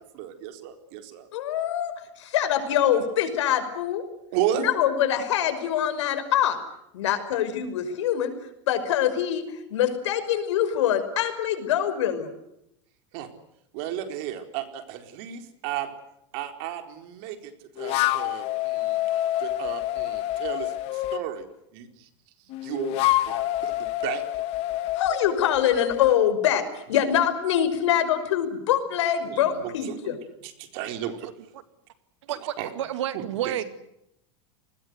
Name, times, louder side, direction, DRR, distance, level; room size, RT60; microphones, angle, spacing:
voice 1, 0.0-1.3 4.3-4.7 13.1-13.3 13.7-15.9 16.3-19.0 19.4-21.5 21.7-22.1 22.6-24.2 26.9-27.0 29.2-31.3 32.3-32.7 33.1-33.6, right 11 dB, 55° right, 7 dB, 4.3 m, -34 dB
voice 2, 1.3-4.0 4.5-6.6 6.9-8.3 8.7-12.3 24.9-30.2, left 10 dB, 80° left, 9 dB, 5.7 m, -24 dB
sound 1, 17.8-21.3 22.5-26.2, left 15 dB, 45° left, 1.8 m, -27 dB
voice 3, 32.3-33.6, right 11 dB, 90° right, 11 dB, 2.6 m, -30 dB
29.5 x 20.5 x 8.1 m, 0.81 s
supercardioid pair, 150°, 15 cm